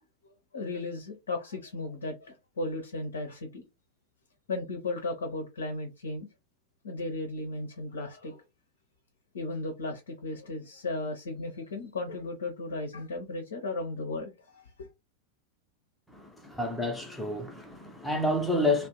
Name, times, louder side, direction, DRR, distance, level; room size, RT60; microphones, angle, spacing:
voice 1, 0.5-3.6 4.5-6.3 6.8-8.4 9.3-14.9, left 2 dB, 65° left, 0.6 m, -35 dB
voice 2, 16.1-18.9, left 1 dB, 5° left, 0.6 m, -29 dB
2.4 x 2.0 x 2.8 m
figure-of-eight pair, 90°, 0 cm